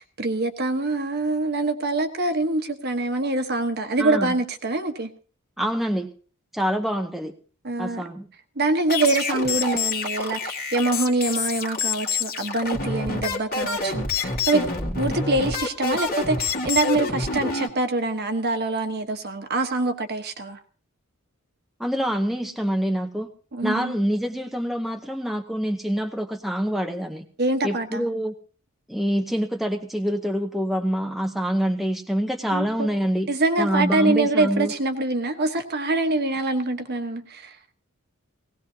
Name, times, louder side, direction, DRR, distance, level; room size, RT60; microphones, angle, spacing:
voice 1, 0.0-5.1 7.6-8.0 8.6-14.6 15.0-20.6 23.5-23.9 27.4-28.0 32.5-32.9 33.3-37.5, right 2 dB, 50° right, 1.3 m, -24 dB
voice 2, 4.0-4.3 5.6-6.1 6.5-7.3 7.8-8.3 14.5-14.9 21.8-23.3 23.6-27.2 27.6-28.3 28.9-33.3 33.6-34.7, equal, ahead, 0.8 m, -26 dB
sound 1, 8.9-17.7, left 4 dB, 45° left, 1.9 m, -27 dB
18.5 x 18.0 x 2.9 m
head